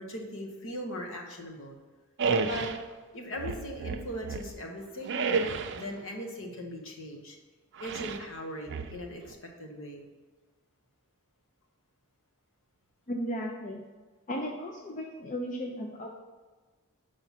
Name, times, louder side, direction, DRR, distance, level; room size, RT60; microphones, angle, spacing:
voice 1, 0.0-1.8 2.4-2.8 3.1-5.2 5.7-7.4 7.8-10.1, equal, 60° left, 2 dB, 1.1 m, -39 dB
sound 1, 2.2-2.8 3.4-4.6 5.1-5.9 7.8-8.3 8.7-9.3, right 4 dB, 55° right, 0.5 m, -31 dB
voice 2, 13.1-13.8 14.3-16.1, equal, 35° left, 1 dB, 0.6 m, -35 dB
6.0 x 4.9 x 5.7 m, 1.3 s
head